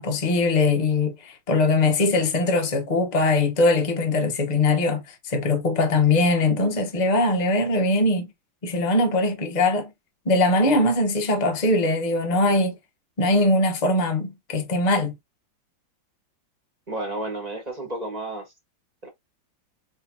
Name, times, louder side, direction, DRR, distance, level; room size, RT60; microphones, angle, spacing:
voice 1, 0.0-8.3 8.6-9.9 10.2-12.8 13.2-15.1, left 2 dB, 35° left, 0.8 m, -21 dB
voice 2, 16.9-18.5 19.0-19.1, right 2 dB, 25° right, 1.5 m, -31 dB
4.2 x 3.7 x 2.7 m
omnidirectional pair, 2.1 m